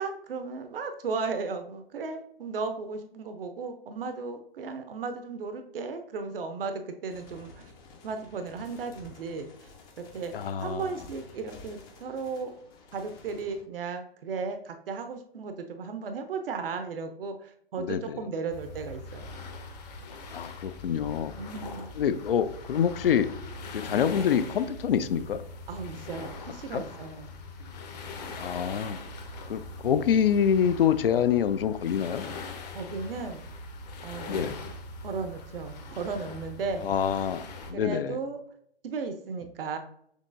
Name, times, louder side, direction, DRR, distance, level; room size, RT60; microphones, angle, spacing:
voice 1, 0.0-7.7 8.0-9.7 10.0-12.5 12.9-19.3 21.4-21.9 25.7-27.3 32.7-33.4 34.0-34.5 35.0-36.9 37.7-38.4 38.8-39.8, right 4 dB, 65° right, 7 dB, 0.7 m, -35 dB
sound 1, 7.1-13.6, left 4 dB, 15° left, 0.4 m, -51 dB
voice 2, 10.3-10.9 17.8-18.2 20.3-21.4 22.0-23.3 23.7-25.4 26.7-26.8 28.4-29.0 29.5-32.2 34.3-34.6 36.8-38.2, left 8 dB, 70° left, 13 dB, 0.4 m, -26 dB
sound 2, 18.5-37.7, left 3 dB, 45° left, 0.9 m, -41 dB
6.4 x 3.0 x 2.5 m, 0.67 s
figure-of-eight pair, 125°, 30 cm